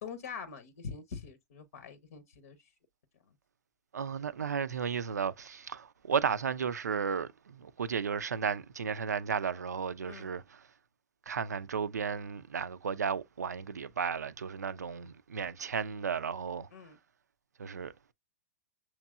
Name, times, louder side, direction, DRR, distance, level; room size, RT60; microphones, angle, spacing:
voice 1, 0.0-2.6 10.1-10.3 16.7-17.0, left 6 dB, 60° left, 0.7 m, -44 dB
voice 2, 3.9-10.6 11.3-16.7 17.6-17.9, right 6 dB, 75° right, 0.4 m, -34 dB
6.4 x 3.0 x 2.2 m
figure-of-eight pair, 100°, 9 cm